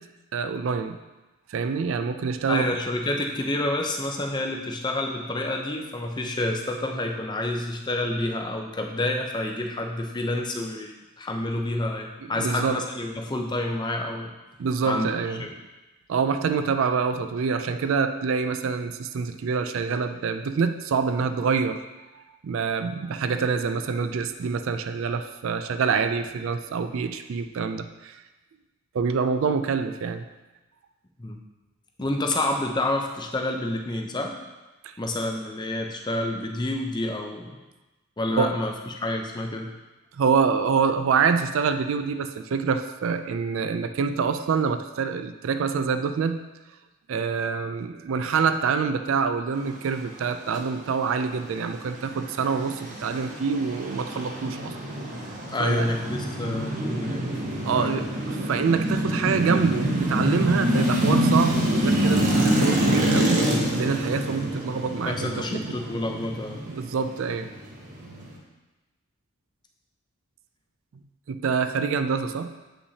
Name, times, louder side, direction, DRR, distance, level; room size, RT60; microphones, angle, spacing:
voice 1, 0.3-1.0 1.5-2.7 12.4-12.8 14.6-15.4 16.1-21.8 22.4-28.2 28.9-30.2 38.4-38.5 40.1-46.4 47.1-54.7 55.6-55.9 57.7-63.4 63.7-65.8 66.7-67.5 71.3-72.5, right 5 dB, 60° right, 9 dB, 0.3 m, -26 dB
voice 2, 2.5-14.3 14.8-15.5 31.2-31.4 32.0-34.4 35.0-37.6 38.2-39.7 55.5-57.2 57.7-58.0 65.0-66.6, left 1 dB, 20° left, 2 dB, 0.6 m, -28 dB
sound 1, 51.6-68.4, equal, 35° right, 1.0 m, -26 dB
8.0 x 5.7 x 2.8 m, 1.1 s
head